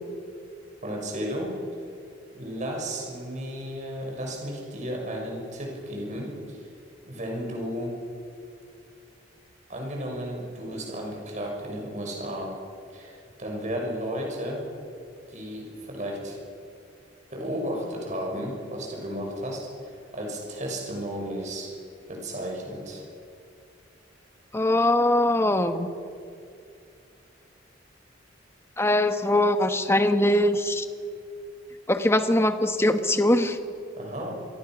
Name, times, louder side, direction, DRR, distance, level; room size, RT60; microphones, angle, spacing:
voice 1, 0.8-1.6 2.3-6.7 7.1-8.0 9.7-12.6 12.9-14.6 15.3-16.4 17.3-19.7 20.1-21.7 22.1-23.1 34.0-34.3, equal, 40° right, 0 dB, 6.4 m, -33 dB
voice 2, 24.5-25.9 28.8-30.9 31.9-33.6, left 1 dB, 15° left, 8 dB, 1.3 m, -22 dB
27.0 x 22.5 x 6.3 m, 2.4 s
head